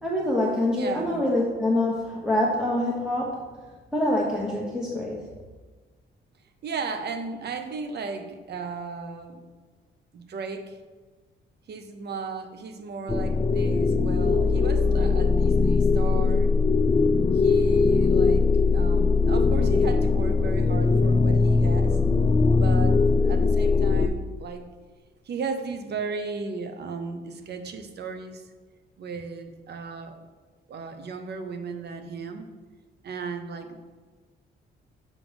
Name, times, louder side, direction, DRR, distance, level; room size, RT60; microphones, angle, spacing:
voice 1, 0.0-3.4 3.9-5.3, left 1 dB, 5° right, -4 dB, 1.2 m, -25 dB
voice 2, 0.7-1.2 6.6-9.5 10.1-10.8 11.7-16.5 17.3-22.0 22.5-24.7 25.2-28.5 29.0-30.2 30.7-32.5 33.0-33.8, right 4 dB, 55° right, 7 dB, 1.0 m, -35 dB
sound 1, 13.1-24.1, left 4 dB, 15° left, 0.4 m, -21 dB
6.8 x 5.3 x 5.1 m, 1.4 s
cardioid pair, 90°, 20 cm